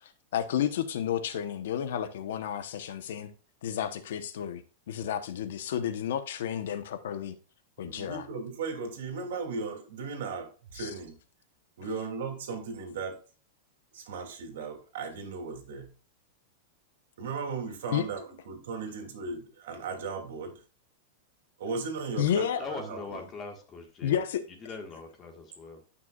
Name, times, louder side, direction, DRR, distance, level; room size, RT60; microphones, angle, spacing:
voice 1, 0.3-3.3 3.6-4.6 4.9-7.3 7.8-8.2 10.8-10.9 17.9-18.0 22.2-22.6 24.0-24.4, left 9 dB, 75° left, 1.0 m, -31 dB
voice 2, 7.8-11.2 11.8-13.2 13.9-15.9 17.2-20.6 21.6-23.3, right 4 dB, 70° right, 2.9 m, -37 dB
voice 3, 22.6-24.2 24.6-25.8, left 4 dB, 20° left, 1.7 m, -41 dB
13.5 x 5.9 x 2.5 m
supercardioid pair, 160°, 0 cm